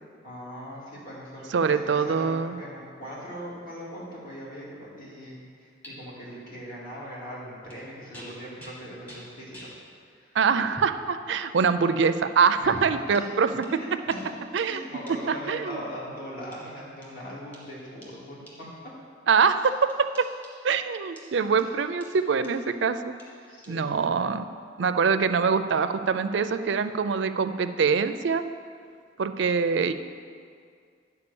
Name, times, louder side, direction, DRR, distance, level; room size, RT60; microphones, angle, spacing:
voice 1, 0.2-9.6 10.1-10.3 12.6-12.8 13.7-14.4 14.6-18.7 23.5-23.9, equal, 50° left, -6 dB, 2.5 m, -40 dB
voice 2, 1.5-2.6 10.3-13.8 14.5-14.8 15.3-15.8 19.3-20.3 20.6-23.0 23.7-24.4 24.8-28.4 29.2-29.9, right 5 dB, 75° right, 10 dB, 0.4 m, -24 dB
sound 1, 5.8-5.9 7.6-7.8 8.1-9.8 10.7-11.0 11.8-12.0 13.1-15.5 16.5-18.9 19.4-20.8 21.2-22.8 23.2-23.7, equal, 10° left, 1.4 m, -50 dB
9.7 x 4.7 x 6.9 m, 2.2 s
head